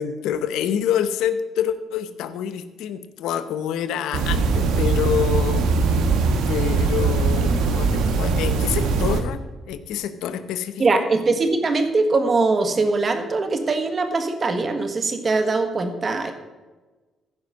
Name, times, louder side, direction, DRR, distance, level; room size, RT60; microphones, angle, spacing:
voice 1, 0.0-5.9 6.5-11.1, left 9 dB, 90° left, 12 dB, 0.8 m, -27 dB
sound 1, 4.1-9.2, right 4 dB, 90° right, 1.2 m, -21 dB
voice 2, 10.8-16.3, right 3 dB, 40° right, 7 dB, 1.5 m, -22 dB
15.5 x 5.2 x 6.4 m, 1.2 s
cardioid pair, 90°, 0 cm